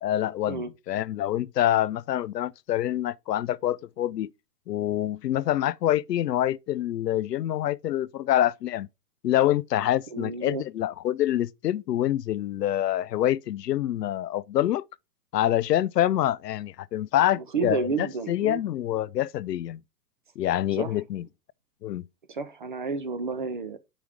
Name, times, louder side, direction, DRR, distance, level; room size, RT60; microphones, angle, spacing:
voice 1, 0.0-4.3 4.7-8.9 9.2-14.8 15.3-19.8 20.4-21.3 21.8-22.0, left 12 dB, 80° left, 0.5 m, -26 dB
voice 2, 10.1-10.6 17.3-18.6 20.8-20.9 22.3-23.8, right 4 dB, 35° right, 0.4 m, -31 dB
6.2 x 5.0 x 3.4 m
hypercardioid pair, 135°, 48 cm